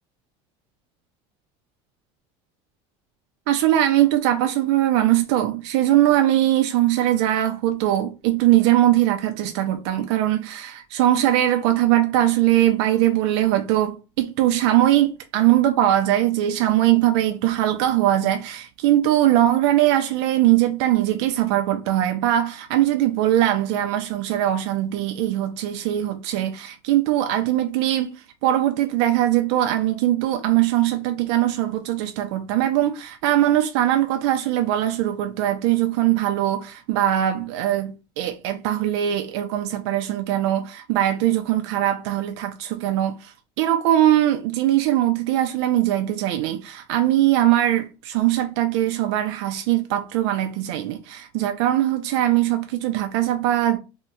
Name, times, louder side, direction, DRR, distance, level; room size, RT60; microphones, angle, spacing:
voice 1, 3.5-53.8, right 13 dB, 85° right, 0.4 m, -21 dB
2.7 x 2.1 x 3.7 m
cardioid pair, 145°, 14 cm